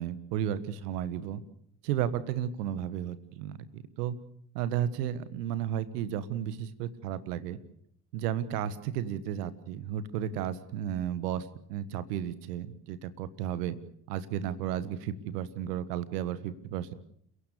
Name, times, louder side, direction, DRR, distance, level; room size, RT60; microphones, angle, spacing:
voice 1, 0.0-1.4 1.8-4.2 4.5-7.6 8.1-13.8 14.1-16.9, right 10 dB, 75° right, 15 dB, 1.5 m, -33 dB
29.0 x 16.5 x 6.9 m, 0.66 s
figure-of-eight pair, 50°, 48 cm